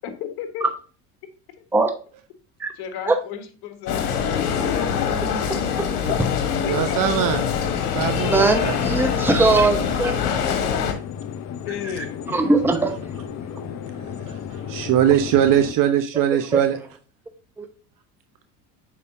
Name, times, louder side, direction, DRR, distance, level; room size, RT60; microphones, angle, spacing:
voice 1, 0.0-0.6 2.7-4.4 6.6-7.4 10.7-10.8 11.6-12.7 13.8-14.4, left 9 dB, 55° left, 7 dB, 1.6 m, -35 dB
sound 1, 3.9-10.9, left 7 dB, 80° left, 1.4 m, -24 dB
voice 2, 5.2-5.9 8.2-10.1 10.4-10.6 12.3-12.9 16.5-16.6 17.6-17.7, right 3 dB, 5° right, 6 dB, 0.8 m, -20 dB
voice 3, 6.6-7.5 7.9-8.8 9.0-9.1 14.3-16.8, right 10 dB, 45° right, 8 dB, 0.9 m, -21 dB
sound 2, 7.4-15.7, left 8 dB, 35° left, 0.8 m, -34 dB
6.9 x 5.1 x 2.7 m, 0.38 s
hypercardioid pair, 80°, 45 cm